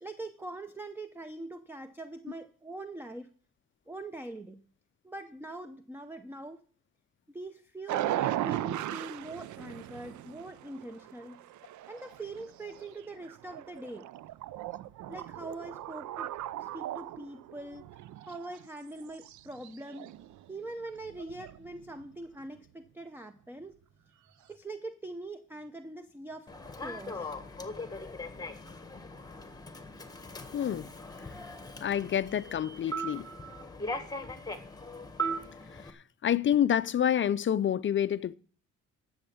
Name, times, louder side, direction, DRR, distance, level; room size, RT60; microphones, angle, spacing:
voice 1, 0.0-3.3 3.9-4.6 5.0-6.6 7.3-11.4 11.9-14.1 15.1-16.3 16.6-17.9 18.2-20.1 20.5-23.8 24.5-26.5 26.8-27.3, right 2 dB, 5° right, 0.8 m, -43 dB
sound 1, 7.9-18.7 19.0-22.1, right 13 dB, 75° right, 0.6 m, -38 dB
Human voice / Subway metro underground, 26.5-35.9, right 1 dB, 15° left, 1.5 m, -39 dB
voice 2, 30.5-30.9 31.2-31.3 31.8-33.3 35.7-38.3, left 9 dB, 40° left, 0.5 m, -28 dB
12.0 x 7.2 x 7.0 m
cardioid pair, 90°, 30 cm